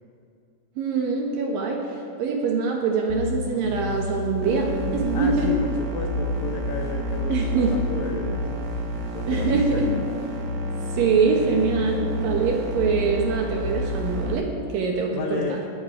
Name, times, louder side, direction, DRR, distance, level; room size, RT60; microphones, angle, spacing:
voice 1, 0.8-5.5 7.3-7.8 9.3-9.9 10.9-15.6, right 5 dB, 75° right, 1 dB, 2.7 m, -24 dB
sound 1, 3.1-14.3, left 4 dB, 45° left, 5.0 m, -31 dB
sound 2, 4.4-14.4, right 5 dB, 90° right, 2.8 m, -32 dB
voice 2, 5.1-8.5 9.1-10.0 15.1-15.6, left 6 dB, 80° left, 2 dB, 1.7 m, -32 dB
20.5 x 9.4 x 4.8 m, 2.5 s
omnidirectional pair, 4.2 m